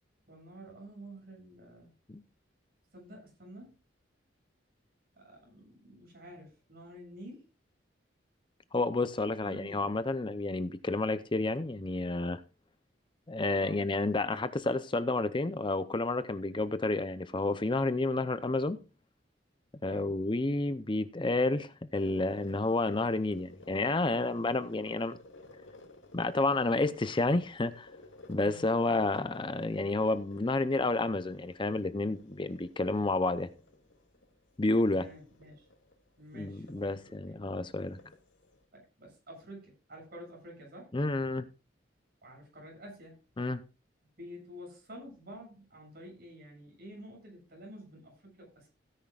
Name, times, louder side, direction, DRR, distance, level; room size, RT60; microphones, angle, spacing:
voice 1, 0.3-1.9 2.9-3.7 5.1-7.5 9.4-9.8 13.5-13.9 19.9-20.2 28.3-28.7 34.8-35.7 36.2-37.4 38.7-40.9 42.2-43.2 44.2-48.7, equal, 55° right, 7.3 m, -49 dB
voice 2, 8.7-12.4 13.3-18.8 19.8-25.2 26.1-27.9 28.3-33.5 34.6-35.1 36.3-38.0 40.9-41.4 43.4-43.6, left 2 dB, 25° left, 0.6 m, -30 dB
sound 1, 21.9-38.6, left 2 dB, 85° left, 2.0 m, -56 dB
16.5 x 10.0 x 2.4 m
head